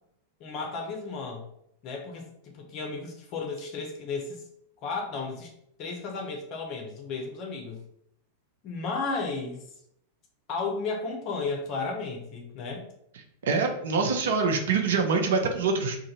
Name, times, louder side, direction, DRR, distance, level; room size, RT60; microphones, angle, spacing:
voice 1, 0.4-1.5 1.8-4.4 4.8-5.5 5.8-7.8 8.6-9.6 10.5-12.8, left 4 dB, 40° left, 1 dB, 0.6 m, -33 dB
voice 2, 13.4-16.0, right 4 dB, 60° right, 4 dB, 0.5 m, -25 dB
2.5 x 2.5 x 4.0 m, 0.74 s
figure-of-eight pair, 90°, 0 cm